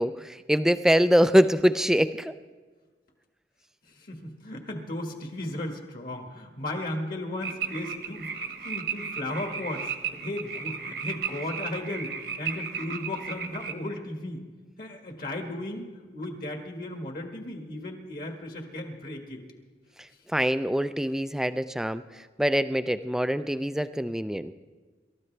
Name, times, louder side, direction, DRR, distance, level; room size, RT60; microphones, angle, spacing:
voice 1, 0.0-2.3 20.3-24.5, equal, 5° right, 12 dB, 0.4 m, -24 dB
voice 2, 3.9-14.4 14.8-19.4, left 1 dB, 50° left, 3 dB, 1.7 m, -35 dB
sound 1, 7.4-13.7, right 6 dB, 60° right, 1.2 m, -35 dB
27.5 x 13.5 x 3.3 m, 1.4 s
head